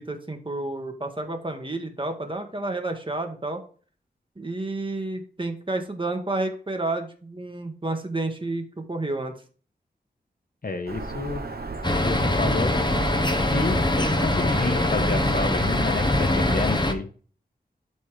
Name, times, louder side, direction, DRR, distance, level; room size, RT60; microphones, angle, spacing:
voice 1, 0.0-3.6 4.4-9.3, right 2 dB, 30° right, 4 dB, 1.8 m, -30 dB
voice 2, 10.6-11.4 12.0-12.8 13.5-17.1, left 3 dB, 55° left, 7 dB, 1.2 m, -29 dB
Bird vocalization bird call bird song, 10.9-16.6, right 3 dB, 65° right, 1.1 m, -35 dB
sound 1, 11.8-16.9, left 1 dB, 25° left, 1.2 m, -23 dB
12.5 x 4.2 x 3.4 m, 0.42 s
wide cardioid pair, 50°, 17 cm